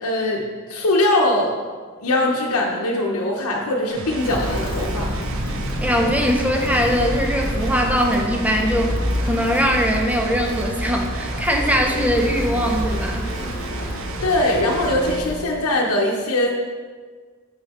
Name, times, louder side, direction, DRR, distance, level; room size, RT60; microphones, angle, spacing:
voice 1, 0.0-1.5 2.0-5.1 14.2-16.5, left 1 dB, 90° left, -1 dB, 0.8 m, -21 dB
sound 1, 3.9-15.2, right 4 dB, 65° right, 0.5 m, -34 dB
Walk footsteps, 4.1-15.4, equal, 40° left, 1.1 m, -28 dB
voice 2, 5.8-13.3, equal, 5° right, 2 dB, 0.6 m, -21 dB
6.4 x 5.5 x 4.2 m, 1.5 s
head